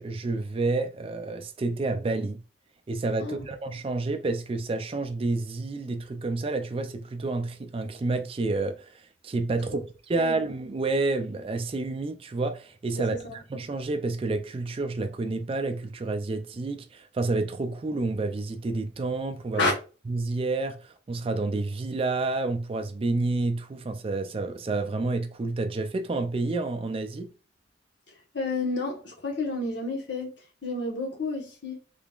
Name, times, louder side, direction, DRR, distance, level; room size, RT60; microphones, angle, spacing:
voice 1, 0.0-2.4 2.9-8.9 9.2-9.8 10.1-19.7 20.1-27.3, right 3 dB, 30° right, 0.4 m, -29 dB
voice 2, 12.9-13.4 19.5-19.7 28.3-30.3 30.6-31.8, left 2 dB, 65° left, 1.2 m, -30 dB
3.6 x 3.3 x 2.3 m
head